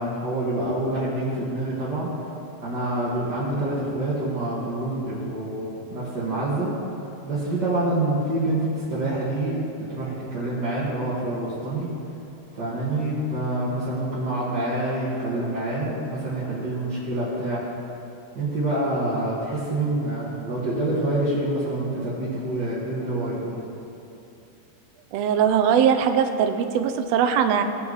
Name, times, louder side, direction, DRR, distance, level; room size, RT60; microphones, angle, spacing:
voice 1, 0.0-2.4 2.6-7.0 7.2-11.9 12.5-17.6 18.3-23.6, right 1 dB, 45° right, -9 dB, 1.6 m, -27 dB
voice 2, 25.1-27.6, right 8 dB, 85° right, 7 dB, 1.4 m, -20 dB
17.0 x 5.7 x 4.0 m, 2.7 s
omnidirectional pair, 3.7 m